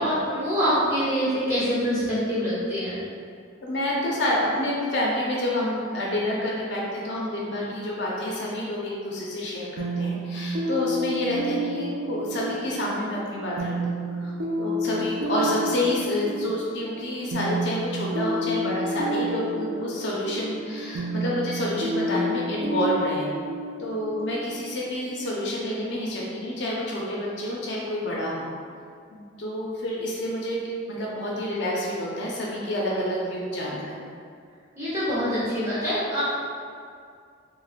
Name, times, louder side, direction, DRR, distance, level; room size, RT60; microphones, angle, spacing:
voice 1, 0.0-3.0 34.7-36.2, equal, 15° right, -11 dB, 1.0 m, -25 dB
voice 2, 3.6-23.3 23.8-28.5 29.1-34.0, left 1 dB, 55° left, -4 dB, 0.4 m, -28 dB
sound 1, 9.8-25.4, right 1 dB, 50° right, 0.4 m, -30 dB
3.5 x 2.0 x 2.4 m, 2.2 s
head